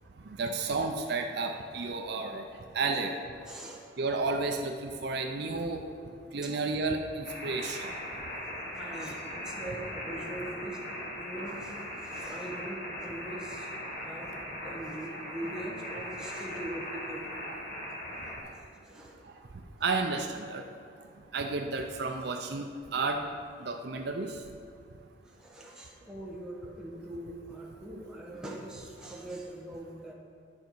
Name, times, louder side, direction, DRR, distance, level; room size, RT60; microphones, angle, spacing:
voice 1, 0.3-2.4 2.7-3.2 4.0-5.8 6.3-7.9 19.8-20.6 21.3-23.2 23.6-24.4, right 3 dB, 55° right, 4 dB, 0.5 m, -32 dB
voice 2, 3.3-3.8 6.4-6.5 8.3-10.8 11.2-17.4 18.2-19.3 25.2-30.1, right 1 dB, 5° right, -3 dB, 1.1 m, -42 dB
sound 1, 7.2-18.4, left 1 dB, 45° left, 1.5 m, -39 dB
10.5 x 5.3 x 4.5 m, 2.4 s
head